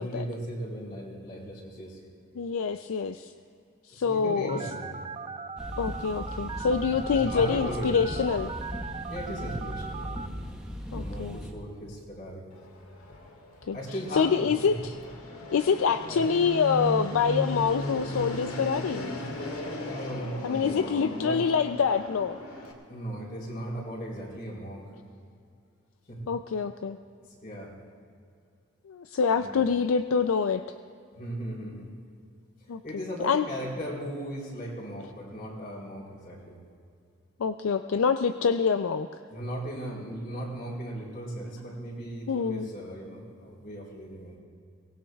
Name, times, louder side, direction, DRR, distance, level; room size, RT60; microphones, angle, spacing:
voice 1, 0.0-2.0 4.0-5.0 7.1-8.0 9.1-10.4 10.9-12.5 13.7-14.8 16.1-16.2 19.9-21.5 22.9-24.9 26.1-26.3 27.2-27.8 29.4-29.7 31.1-31.9 32.8-36.6 39.3-44.4, equal, 40° left, -4 dB, 4.3 m, -37 dB
voice 2, 2.4-3.3 3.9-4.6 5.8-8.5 10.9-11.4 13.7-13.8 14.1-14.9 15.5-19.2 20.4-22.4 26.3-27.0 28.9-30.6 32.7-32.8 33.2-33.5 37.4-39.1 42.3-42.7, left 6 dB, 70° left, 9 dB, 0.4 m, -26 dB
Telephone, 4.5-10.3, right 5 dB, 25° right, 0.3 m, -39 dB
sound 1, 5.6-11.5, equal, 5° right, 1.2 m, -38 dB
Fixed-wing aircraft airplane, 12.5-22.7, equal, 85° left, 2.1 m, -37 dB
23.5 x 19.0 x 2.3 m, 2.4 s
head